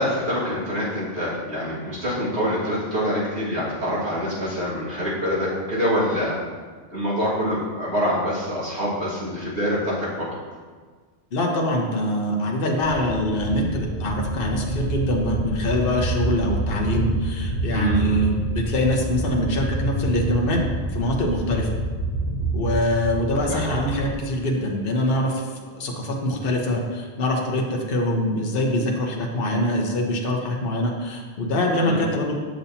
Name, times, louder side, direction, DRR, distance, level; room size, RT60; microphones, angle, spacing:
voice 1, 0.0-6.4 6.9-10.3 17.7-18.1 23.5-23.8 31.7-32.0, equal, 80° right, -8 dB, 2.4 m, -25 dB
voice 2, 11.3-20.6 20.9-21.7 22.5-25.5 25.7-32.3, left 1 dB, 60° left, 0 dB, 1.1 m, -24 dB
sound 1, 12.8-24.2, right 1 dB, 80° left, 1.7 m, -27 dB
7.5 x 6.9 x 2.8 m, 1.5 s
omnidirectional pair, 1.1 m